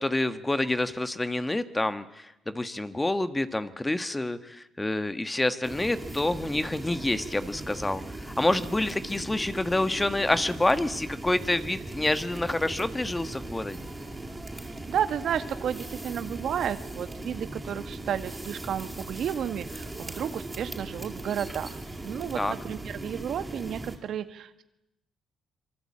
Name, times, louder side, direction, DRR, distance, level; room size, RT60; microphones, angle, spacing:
voice 1, 0.0-13.9 22.4-22.5, left 2 dB, 15° left, 11 dB, 1.5 m, -28 dB
sound 1, 5.6-24.0, right 2 dB, 15° right, 5.0 m, -39 dB
voice 2, 14.9-24.6, right 9 dB, 70° right, 11 dB, 1.7 m, -32 dB
26.0 x 24.0 x 8.7 m, 0.88 s
cardioid pair, 90°, 0 cm